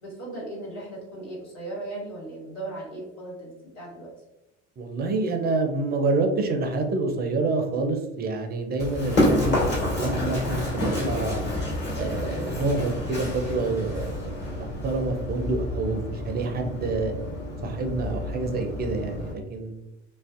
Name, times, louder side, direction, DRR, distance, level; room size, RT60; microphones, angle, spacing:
voice 1, 0.0-4.1, right 2 dB, 75° left, -5 dB, 1.4 m, -37 dB
voice 2, 4.8-11.4 12.0-17.1 17.6-19.7, right 3 dB, 25° right, 4 dB, 0.5 m, -27 dB
Run, 8.8-19.3, left 1 dB, 30° left, 1.3 m, -29 dB
2.5 x 2.1 x 2.4 m, 0.91 s
hypercardioid pair, 70°, 36 cm